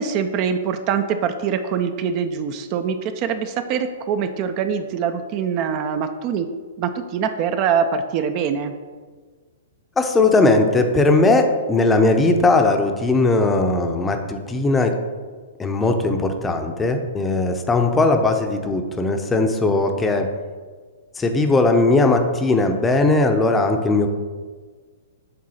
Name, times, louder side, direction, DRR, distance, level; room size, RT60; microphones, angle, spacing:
voice 1, 0.0-6.5 6.8-8.7, right 7 dB, 40° right, 8 dB, 0.4 m, -23 dB
voice 2, 10.0-14.9 15.6-20.3 21.2-24.1, left 2 dB, 15° left, 5 dB, 0.6 m, -18 dB
7.6 x 3.7 x 4.2 m, 1.5 s
hypercardioid pair, 125°, 0 cm